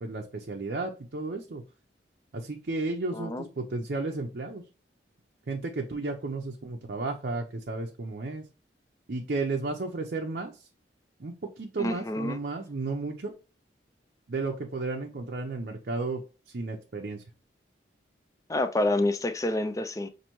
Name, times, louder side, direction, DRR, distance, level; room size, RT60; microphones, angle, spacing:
voice 1, 0.0-1.6 2.3-4.6 5.5-8.4 9.1-10.7 11.2-13.3 14.3-16.2 16.5-17.2, right 3 dB, 55° right, 0.6 m, -33 dB
voice 2, 3.1-3.4 11.8-12.4 18.5-20.1, left 1 dB, 20° left, 0.4 m, -28 dB
5.5 x 2.6 x 3.0 m
head